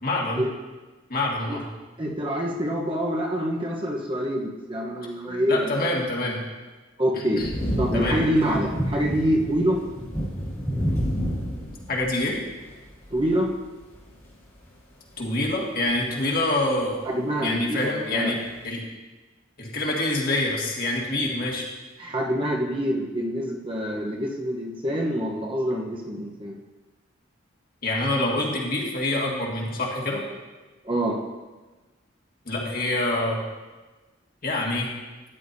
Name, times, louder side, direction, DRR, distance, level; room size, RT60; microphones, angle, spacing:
voice 1, 0.0-0.4 1.1-1.6 5.5-6.5 7.1-7.5 7.9-8.2 11.9-12.4 15.2-17.1 17.4-18.4 18.6-18.8 19.6-21.7 27.8-30.2 32.5-33.4 34.4-34.9, left 2 dB, 45° left, -2 dB, 1.8 m, -26 dB
voice 2, 2.0-5.7 7.0-7.4 7.8-9.8 13.1-13.5 17.0-18.3 22.0-26.6 30.8-31.2, equal, 25° right, -1 dB, 1.0 m, -26 dB
sound 1, 7.4-13.5 13.8-14.2 14.7-14.8 15.3-15.4 15.9-16.0 16.6-16.7, equal, 15° left, 1.8 m, -29 dB
13.0 x 10.0 x 2.7 m, 1.2 s
head